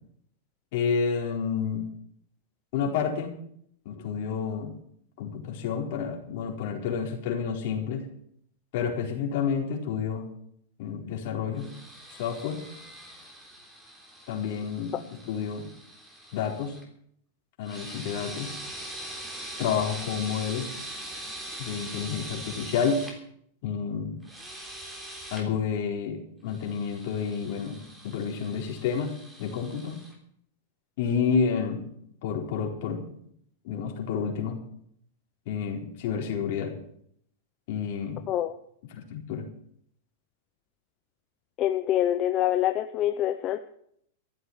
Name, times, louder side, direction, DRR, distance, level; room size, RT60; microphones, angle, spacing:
voice 1, 0.7-1.9 2.7-3.3 3.8-4.7 5.2-8.0 8.7-10.3 10.8-11.7 12.1-12.6 14.3-15.7 16.3-16.7 17.6-18.5 19.6-20.7 21.6-23.0 23.6-24.2 25.3-30.0 31.0-31.8 32.2-33.0 33.6-34.6 35.5-36.7 37.7-38.3 38.9-39.4, left 6 dB, 55° left, 1 dB, 4.2 m, -30 dB
sound 1, 11.6-16.8 17.6-23.1 24.2-25.4 26.5-30.1, right 1 dB, 10° right, 3.5 m, -42 dB
voice 2, 41.6-43.6, left 12 dB, 35° left, 8 dB, 0.8 m, -25 dB
14.5 x 8.0 x 8.9 m, 0.67 s
supercardioid pair, 140°, 0 cm